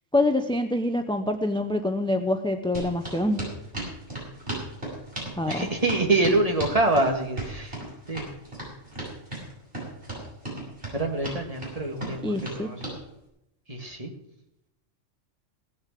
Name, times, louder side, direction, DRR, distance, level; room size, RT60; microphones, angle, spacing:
voice 1, 0.1-3.4 5.4-5.7 12.2-12.7, left 1 dB, 5° left, 7 dB, 0.5 m, -25 dB
Hi Tops Running on wood, 2.7-13.0, right 2 dB, 45° right, 6.4 m, -35 dB
voice 2, 5.5-7.8 8.1-8.2 10.9-12.8 13.7-14.1, right 2 dB, 30° right, 3 dB, 2.0 m, -25 dB
17.0 x 6.9 x 7.6 m, 0.82 s
omnidirectional pair, 1.3 m